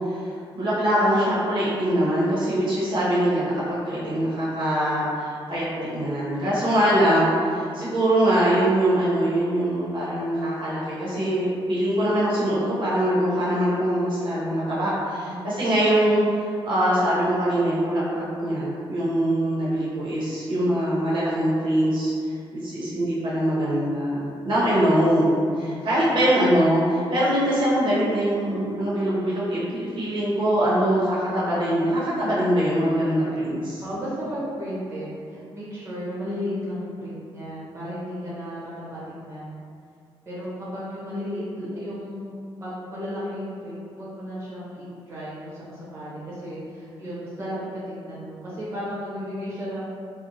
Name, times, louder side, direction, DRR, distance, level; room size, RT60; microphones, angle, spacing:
voice 1, 0.5-22.1 22.5-33.8, right 1 dB, 55° right, -9 dB, 0.7 m, -23 dB
voice 2, 25.5-25.9 33.8-39.6 40.3-42.3 42.6-50.0, equal, 30° right, -9 dB, 0.9 m, -34 dB
2.9 x 2.1 x 2.7 m, 2.4 s
wide cardioid pair, 150°, 10 cm